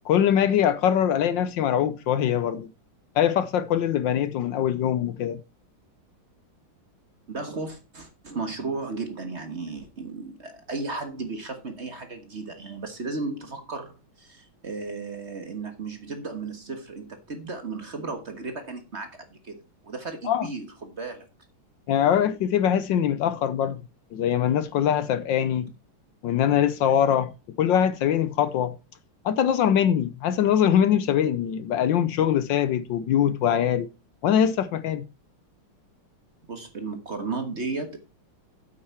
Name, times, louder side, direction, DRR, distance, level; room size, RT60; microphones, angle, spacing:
voice 1, 0.0-2.7 3.1-5.4 20.2-20.5 21.9-23.8 24.1-25.7 26.2-27.3 27.6-28.8 29.2-33.9 34.2-35.1, left 9 dB, 70° left, 1.3 m, -22 dB
voice 2, 7.3-21.3 36.5-38.0, right 3 dB, 35° right, 1.5 m, -35 dB
8.8 x 8.5 x 4.4 m
omnidirectional pair, 2.3 m